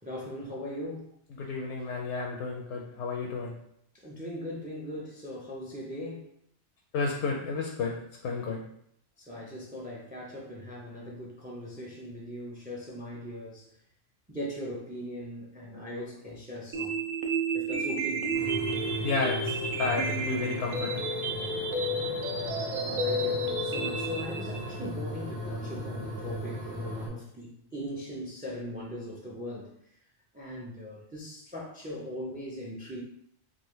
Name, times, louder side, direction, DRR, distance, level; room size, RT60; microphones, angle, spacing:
voice 1, 0.0-1.1 3.9-6.3 9.2-13.8 14.3-17.0 17.5-18.5 21.9-30.0 30.3-33.0, equal, 15° right, -4 dB, 0.3 m, -40 dB
voice 2, 1.4-3.6 6.9-8.7 19.0-21.1, left 3 dB, 75° left, 0 dB, 0.8 m, -32 dB
sound 1, 16.7-24.7, right 1 dB, 55° right, 0.7 m, -31 dB
sound 2, 18.3-27.1, equal, 80° right, 1.7 m, -37 dB
3.8 x 2.5 x 3.1 m, 0.71 s
omnidirectional pair, 1.2 m